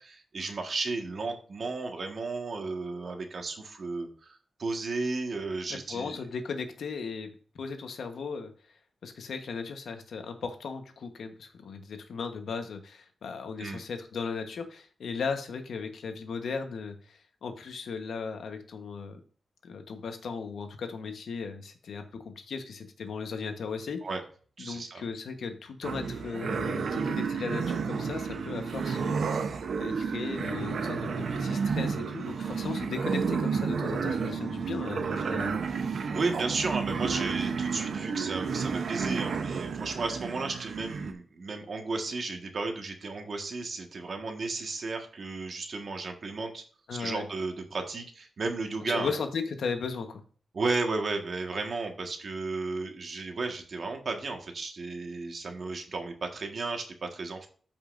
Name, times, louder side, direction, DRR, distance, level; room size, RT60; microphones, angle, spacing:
voice 1, 0.0-6.2 13.6-13.8 24.0-24.2 24.6-25.0 36.1-46.6 46.9-49.1 50.5-57.5, right 3 dB, 50° right, 3 dB, 1.6 m, -34 dB
voice 2, 5.9-8.5 9.0-19.2 19.6-24.0 24.6-29.4 29.8-35.6 46.9-47.2 48.9-50.2, left 5 dB, 80° left, 6 dB, 1.2 m, -36 dB
sound 1, 25.8-41.1, right 5 dB, 70° right, 0.8 m, -31 dB
13.5 x 5.5 x 2.6 m, 0.42 s
wide cardioid pair, 125°, 0 cm